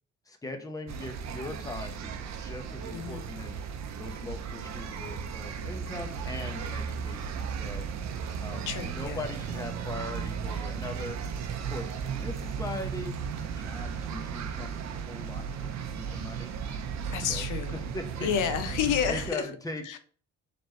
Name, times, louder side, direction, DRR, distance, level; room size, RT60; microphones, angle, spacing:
voice 1, 0.3-3.6 4.0-7.8 8.4-11.2 11.6-16.5 17.3-17.4 17.9-18.3 19.1-20.0, left 2 dB, 10° left, 0.9 m, -40 dB
sound 1, 0.9-19.3, right 6 dB, 60° right, 0.7 m, -35 dB
voice 2, 2.9-3.2 8.7-9.3 16.1-16.3 17.1-17.8 18.2-19.5 19.8-20.0, left 8 dB, 90° left, 0.6 m, -30 dB
4.1 x 3.3 x 3.0 m
cardioid pair, 90°, 30 cm